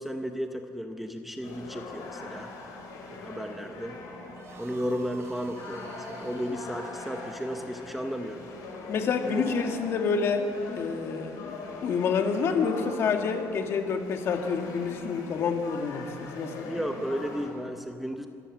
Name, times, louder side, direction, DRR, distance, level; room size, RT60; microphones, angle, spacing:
voice 1, 0.0-2.5 3.1-4.0 4.5-8.5 9.2-9.5 16.6-18.3, equal, ahead, 5 dB, 0.8 m, -34 dB
sound 1, 1.4-17.5, left 3 dB, 70° left, 4.8 m, -42 dB
sound 2, 4.3-9.9, right 3 dB, 45° right, 3.1 m, -49 dB
voice 2, 8.9-11.5 11.8-16.7, left 5 dB, 45° left, 5 dB, 1.7 m, -28 dB
26.0 x 14.0 x 7.3 m, 2.7 s
cardioid pair, 175°, 6 cm